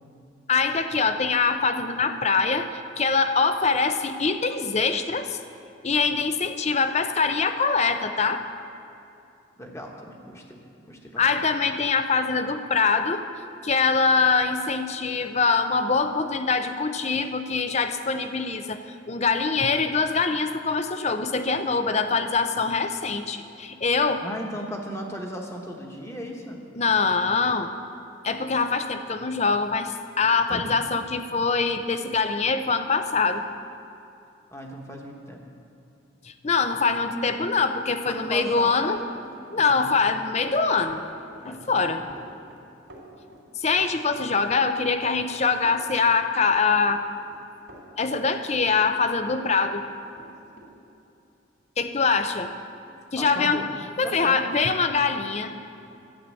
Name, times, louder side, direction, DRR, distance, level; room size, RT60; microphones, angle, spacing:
voice 1, 0.5-5.4 5.8-8.4 11.2-13.2 13.6-24.2 26.8-27.7 28.2-33.4 36.2-39.0 39.5-41.0 41.4-42.0 43.6-47.0 48.0-49.8 51.8-52.5 53.1-53.6 54.0-55.6, left 4 dB, 35° left, 9 dB, 0.6 m, -23 dB
voice 2, 9.6-10.6 10.9-11.4 24.2-26.6 30.5-30.6 34.5-35.4 38.1-39.0 39.2-40.1 41.4-42.1 53.2-53.7 54.0-54.4, equal, 15° left, 1 dB, 1.1 m, -37 dB
Run, 38.3-49.5 49.7-50.7, right 1 dB, 80° right, 2.9 m, -49 dB
11.5 x 8.4 x 7.6 m, 2.7 s
head